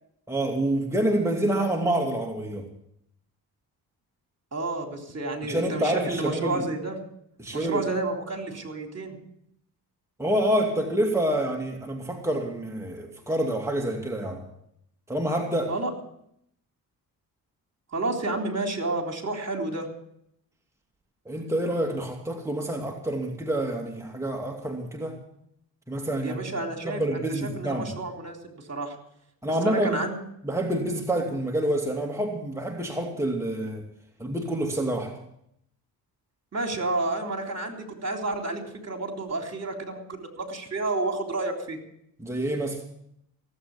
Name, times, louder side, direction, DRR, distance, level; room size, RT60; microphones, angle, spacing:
voice 1, 0.3-2.7 5.4-6.6 7.4-7.9 10.2-14.4 15.1-15.7 21.3-25.2 25.9-26.4 26.8-27.9 29.4-30.0 30.4-33.8 34.2-35.1 42.2-42.8, right 1 dB, 5° right, 1 dB, 2.5 m, -27 dB
voice 2, 4.5-7.0 7.5-9.2 15.7-15.9 17.9-19.9 26.2-29.0 29.6-30.2 36.5-41.8, right 2 dB, 35° right, 3 dB, 3.7 m, -30 dB
17.0 x 8.5 x 8.5 m, 0.75 s
supercardioid pair, 50°, 44 cm